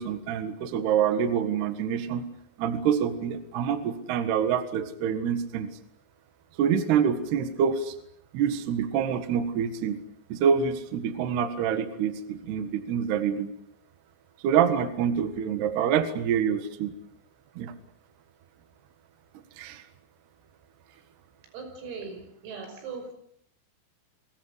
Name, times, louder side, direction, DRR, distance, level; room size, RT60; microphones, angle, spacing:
voice 1, 0.0-2.3 2.6-5.7 6.6-8.0 8.3-10.0 10.3-13.5 14.4-16.9 17.6-17.7 19.6-19.8, right 8 dB, 60° right, 10 dB, 3.2 m, -26 dB
voice 2, 21.5-23.1, right 4 dB, 85° right, 7 dB, 8.3 m, -39 dB
30.0 x 23.5 x 8.1 m, 0.72 s
omnidirectional pair, 6.0 m